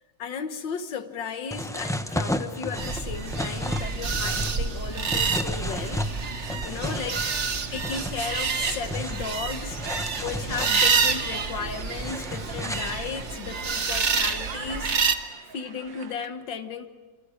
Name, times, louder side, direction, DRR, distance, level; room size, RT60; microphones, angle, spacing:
voice 1, 0.2-6.1 6.6-7.3 7.7-14.9 15.5-16.9, left 6 dB, 90° left, 8 dB, 2.0 m, -35 dB
sound 1, 1.5-13.3, equal, 5° left, 0.4 m, -34 dB
sound 2, 2.8-15.2, right 5 dB, 45° right, 1.5 m, -28 dB
sound 3, 8.6-16.3, right 7 dB, 80° right, 1.9 m, -43 dB
27.5 x 25.0 x 6.6 m, 1.3 s
omnidirectional pair, 1.9 m